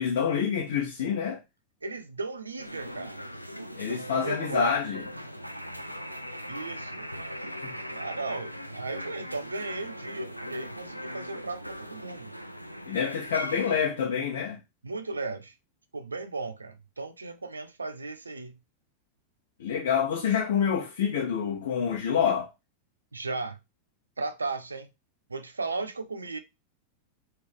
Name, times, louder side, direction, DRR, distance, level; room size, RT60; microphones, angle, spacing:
voice 1, 0.0-1.4 3.7-5.0 7.6-7.7 12.9-14.6 19.6-22.5, left 7 dB, 60° left, 0.9 m, -27 dB
voice 2, 1.8-3.3 3.9-4.8 6.5-7.1 7.9-12.3 14.8-15.5 15.9-18.6 23.1-23.6 24.2-24.9 25.3-26.4, right 3 dB, 75° right, 0.6 m, -35 dB
sound 1, 2.6-13.8, equal, 90° left, 0.4 m, -39 dB
4.2 x 3.3 x 3.3 m
figure-of-eight pair, 90°, 0 cm